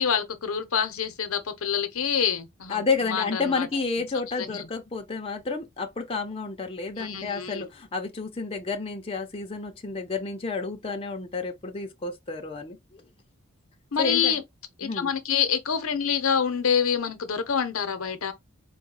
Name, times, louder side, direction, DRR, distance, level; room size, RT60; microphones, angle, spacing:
voice 1, 0.0-3.7 4.4-4.7 7.0-7.7 13.9-14.4 14.8-18.3, left 7 dB, 80° left, 0.7 m, -27 dB
voice 2, 2.7-13.0 14.0-14.4 14.8-15.1, left 4 dB, 25° left, 0.7 m, -30 dB
4.0 x 2.2 x 3.7 m
head